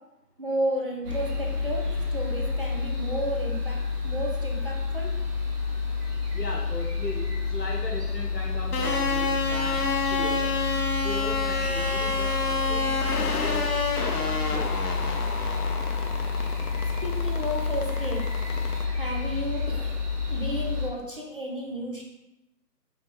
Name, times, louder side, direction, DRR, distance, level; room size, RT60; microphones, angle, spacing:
voice 1, 0.4-1.8 2.1-5.1 17.0-18.2 19.0-20.0 20.3-22.0, right 1 dB, 35° right, -2 dB, 0.5 m, -32 dB
sound 1, 1.0-20.9, left 4 dB, 70° right, 1.3 m, -29 dB
voice 2, 6.3-9.8 10.1-10.5 11.0-13.6 14.1-14.8, left 2 dB, 80° left, -1 dB, 1.2 m, -37 dB
sound 2, 8.7-18.8, left 3 dB, 65° left, 0.7 m, -29 dB
sound 3, 11.6-16.3, equal, 25° left, 0.9 m, -45 dB
3.7 x 3.3 x 3.1 m, 0.96 s
figure-of-eight pair, 145°, 49 cm